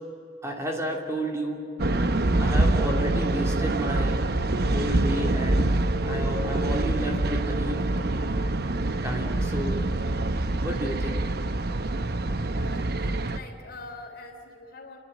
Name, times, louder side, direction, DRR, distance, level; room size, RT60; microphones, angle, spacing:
voice 1, 0.4-1.6 2.4-5.7 6.0-8.1 9.0-9.8 10.6-11.2, right 1 dB, 15° right, 0 dB, 2.9 m, -32 dB
sound 1, 1.8-13.4, right 2 dB, 60° right, 0.9 m, -25 dB
voice 2, 11.9-12.2 12.5-15.0, left 2 dB, 60° left, 3 dB, 3.4 m, -44 dB
30.0 x 11.5 x 9.9 m, 2.6 s
head